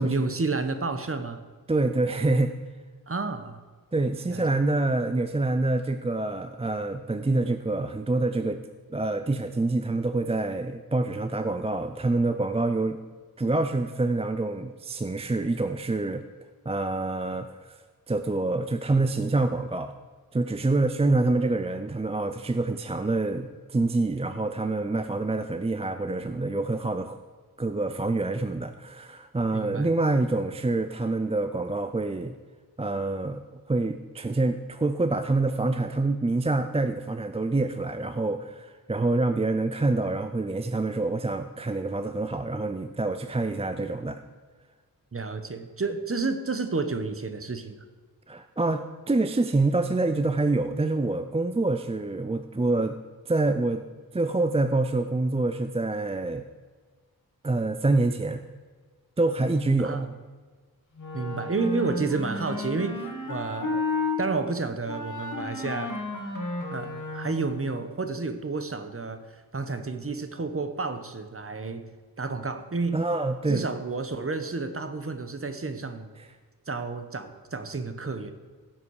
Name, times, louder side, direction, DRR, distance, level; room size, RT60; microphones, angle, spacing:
voice 1, 0.0-1.4 3.1-3.6 4.3-4.4 29.5-29.9 45.1-47.8 59.8-60.1 61.1-63.8 64.2-66.0 66.7-71.9 72.2-73.0 73.5-76.1 76.7-78.3, right 3 dB, 35° right, 8 dB, 1.0 m, -30 dB
voice 2, 1.7-2.5 3.9-8.6 8.9-13.0 13.4-16.2 16.7-17.8 18.1-19.9 20.3-27.2 27.6-32.3 32.8-33.4 33.7-44.2 48.3-53.0 53.3-53.8 54.1-56.4 57.4-58.4 59.2-60.0 72.9-73.7 76.2-76.3, right 2 dB, 15° right, 9 dB, 0.4 m, -26 dB
Wind instrument woodwind instrument, 61.0-64.2 64.9-67.6, left 3 dB, 55° left, 2.1 m, -32 dB
15.5 x 7.4 x 4.8 m, 1.5 s
wide cardioid pair, 95°, 37 cm